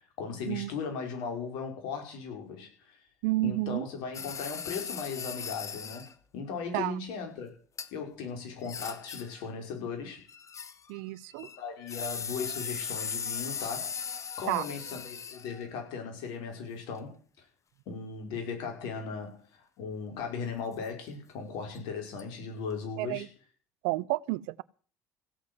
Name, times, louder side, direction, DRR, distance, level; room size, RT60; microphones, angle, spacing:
voice 1, 0.2-3.0 3.4-7.6 7.9-10.2 11.6-14.0 14.4-17.2 17.9-23.3, left 5 dB, 65° left, 5.4 m, -37 dB
voice 2, 3.2-3.9 6.7-7.0 10.9-11.5 14.5-14.7 23.0-23.3 23.8-24.6, right 19 dB, 70° right, 0.6 m, -30 dB
sound 1, 4.1-6.1 7.8-7.9 8.6-9.4 10.3-11.0 11.3-15.7 21.7-21.8 22.2-22.3, left 6 dB, 40° left, 1.7 m, -38 dB
16.5 x 8.3 x 7.9 m
hypercardioid pair, 55°, 8 cm